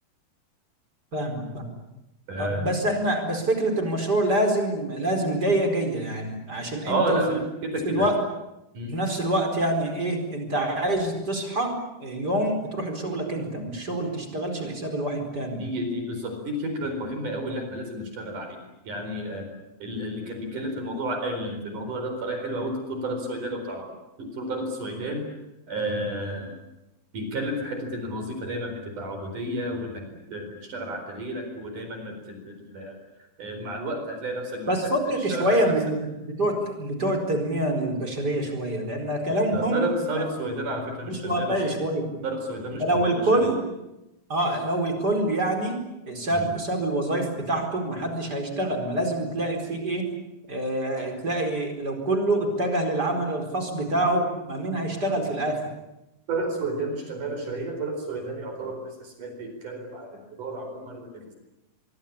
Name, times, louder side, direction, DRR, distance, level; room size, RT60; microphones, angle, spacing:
voice 1, 1.1-1.8 2.4-7.4 7.8-8.1 8.9-11.7 12.0-15.6 34.7-39.9 40.1-40.2 41.0-42.1 42.8-43.7 44.3-50.1 50.5-55.6, right 1 dB, 25° right, 5 dB, 4.7 m, -26 dB
voice 2, 2.3-2.7 6.9-8.1 8.7-9.0 15.6-18.6 18.8-19.5 19.8-23.9 24.2-25.2 25.7-26.5 27.1-33.0 33.4-34.9 35.3-35.7 39.5-41.6 42.2-43.5 46.3-46.5 56.3-61.3, right 1 dB, 50° right, 5 dB, 5.8 m, -31 dB
24.0 x 24.0 x 8.7 m, 0.94 s
omnidirectional pair, 4.6 m